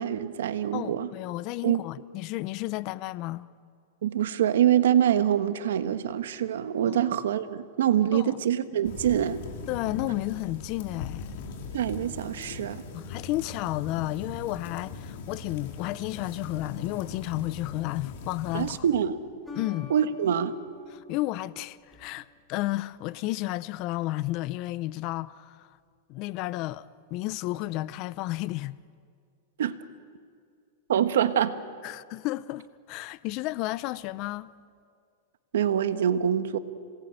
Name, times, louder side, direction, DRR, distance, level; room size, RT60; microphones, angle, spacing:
voice 1, 0.0-1.1 1.6-1.8 4.0-9.4 11.7-12.8 18.5-19.2 19.9-20.5 29.6-29.7 30.9-31.5 35.5-36.6, right 10 dB, 85° right, 1.4 m, -25 dB
voice 2, 0.7-3.5 6.9-7.0 8.1-8.4 9.7-11.4 12.9-18.8 19.5-19.9 20.9-25.7 26.1-28.8 31.8-34.5, left 17 dB, 40° left, 0.6 m, -32 dB
sound 1, 8.8-18.8, left 4 dB, 60° left, 4.0 m, -40 dB
sound 2, 19.5-22.4, left 1 dB, 10° left, 2.7 m, -48 dB
27.0 x 19.0 x 9.0 m
supercardioid pair, 150°, 0 cm